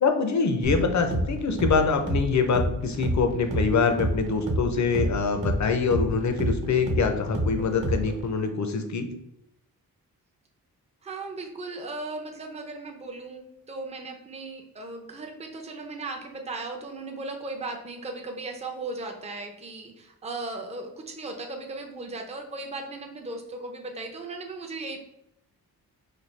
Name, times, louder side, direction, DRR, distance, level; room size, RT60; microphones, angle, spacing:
voice 1, 0.0-9.1, left 5 dB, 50° left, 6 dB, 0.6 m, -24 dB
sound 1, 0.6-8.3, right 1 dB, 55° right, 1.0 m, -29 dB
voice 2, 11.0-25.0, right 3 dB, 20° right, 2 dB, 0.5 m, -37 dB
4.2 x 2.6 x 3.2 m, 0.82 s
wide cardioid pair, 130°, 37 cm